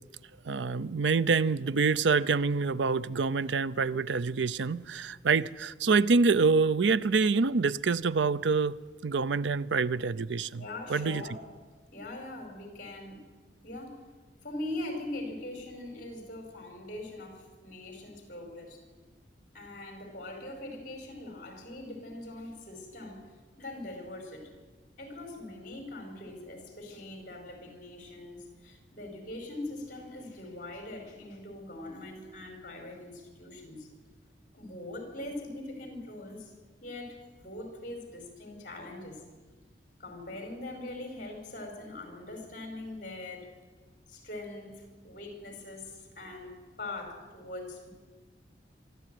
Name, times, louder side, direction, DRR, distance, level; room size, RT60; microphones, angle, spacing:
voice 1, 0.5-8.8 9.0-10.6 10.9-11.2, right 4 dB, 85° right, 0.6 m, -26 dB
voice 2, 10.5-11.4 11.9-13.2 13.6-14.1 14.4-18.8 19.5-23.3 23.6-24.5 25.0-33.9 34.5-36.5 36.8-39.2 40.0-43.5 44.1-47.9, left 2 dB, 45° left, 5.0 m, -42 dB
24.5 x 13.0 x 9.2 m
head